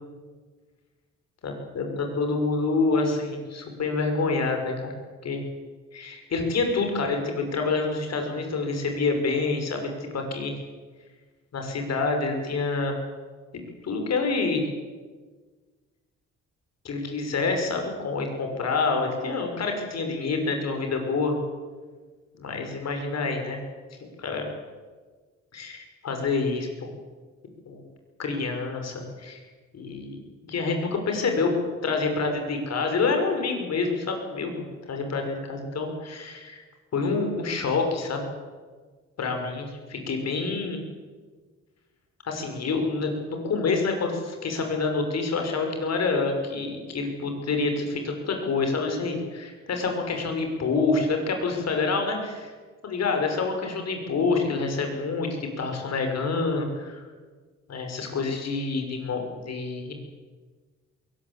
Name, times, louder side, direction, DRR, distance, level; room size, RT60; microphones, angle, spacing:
voice 1, 1.4-4.9 5.2-5.4 5.9-10.6 11.5-12.9 13.8-14.7 16.8-21.4 22.4-23.6 24.0-24.5 25.5-26.9 27.7-27.9 28.2-29.4 29.7-30.2 30.4-31.5 31.8-34.5 34.9-36.6 36.9-38.2 39.2-40.8 42.2-52.5 52.8-57.0 57.7-59.9, left 4 dB, 60° left, 4 dB, 6.0 m, -27 dB
22.0 x 19.0 x 8.3 m, 1.4 s
cardioid pair, 90°, 30 cm